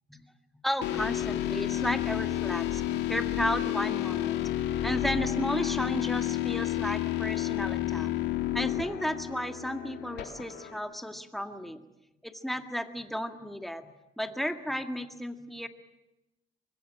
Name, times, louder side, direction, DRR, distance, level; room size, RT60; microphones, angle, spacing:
voice 1, 0.6-2.8 3.1-4.5 4.8-8.1 8.5-11.8 12.2-13.9 14.2-15.7, equal, ahead, 7 dB, 1.9 m, -33 dB
sound 1, 0.8-10.8, left 13 dB, 85° left, 2.3 m, -31 dB
24.5 x 22.0 x 8.9 m, 0.95 s
cardioid pair, 110°, 17 cm